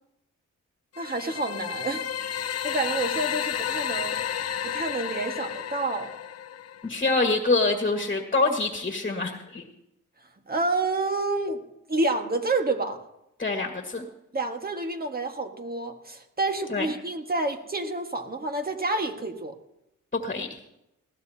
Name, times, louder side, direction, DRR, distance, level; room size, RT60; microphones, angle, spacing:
sound 1, 0.9-6.9, left 9 dB, 55° left, 0.6 m, -32 dB
voice 1, 1.0-4.2 4.6-6.1 10.5-11.6 11.9-13.0 14.3-19.6, right 2 dB, 30° right, 4 dB, 1.7 m, -29 dB
voice 2, 6.8-9.6 13.4-14.0 16.7-16.9 20.1-20.5, left 3 dB, 30° left, 4 dB, 1.8 m, -25 dB
20.0 x 16.0 x 2.9 m, 0.85 s
cardioid pair, 90°, 31 cm